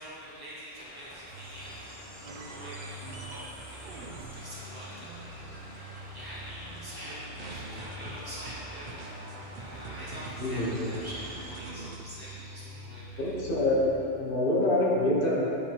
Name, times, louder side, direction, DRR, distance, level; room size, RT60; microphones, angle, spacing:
voice 1, 0.0-3.4 3.7-9.2 9.5-13.2, equal, 20° right, -10 dB, 1.4 m, -45 dB
sound 1, 0.7-11.5, equal, 75° left, 1.5 m, -50 dB
sound 2, 1.3-14.1, right 1 dB, 35° right, 1.2 m, -46 dB
sound 3, 2.2-6.3 6.6-12.0, right 3 dB, 65° right, 0.5 m, -46 dB
voice 2, 10.4-10.9 13.2-13.8 14.1-15.4, left 1 dB, 45° left, -4 dB, 1.1 m, -26 dB
8.5 x 4.2 x 2.9 m, 2.8 s
omnidirectional pair, 1.3 m